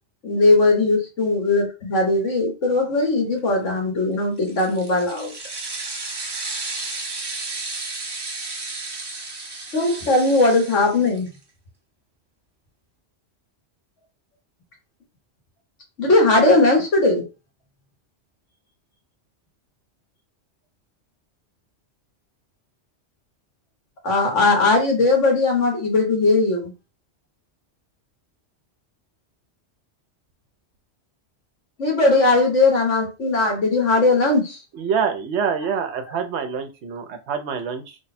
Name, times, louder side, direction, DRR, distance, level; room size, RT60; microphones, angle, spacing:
voice 1, 0.2-5.3 9.7-11.3 16.0-17.3 24.0-26.7 31.8-34.6, left 2 dB, 85° left, 1 dB, 1.7 m, -19 dB
sound 1, 4.4-11.4, right 3 dB, 25° right, 0.7 m, -33 dB
voice 2, 34.7-38.0, right 6 dB, 70° right, 6 dB, 0.9 m, -26 dB
3.3 x 2.2 x 4.1 m, 0.29 s
omnidirectional pair, 1.2 m